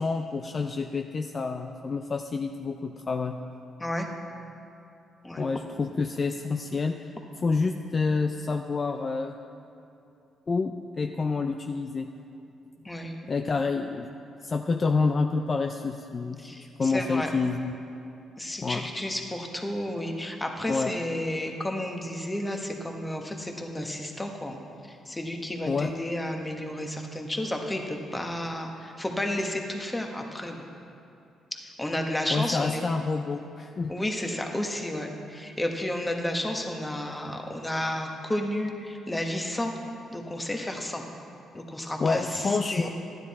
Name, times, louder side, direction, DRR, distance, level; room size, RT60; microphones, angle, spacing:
voice 1, 0.0-3.4 5.4-7.0 7.4-9.3 10.5-12.1 13.3-14.1 14.4-16.4 16.8-17.8 18.6-18.9 20.7-20.9 25.7-25.9 32.3-33.9 42.0-42.9, left 4 dB, 40° left, 5 dB, 0.4 m, -28 dB
voice 2, 16.4-17.3 18.4-24.6 24.9-30.6 31.8-32.8 33.9-39.7 40.1-41.0 41.5-42.9, left 1 dB, 15° left, 3 dB, 1.2 m, -32 dB
12.0 x 10.0 x 4.2 m, 2.7 s
cardioid pair, 90°, 0 cm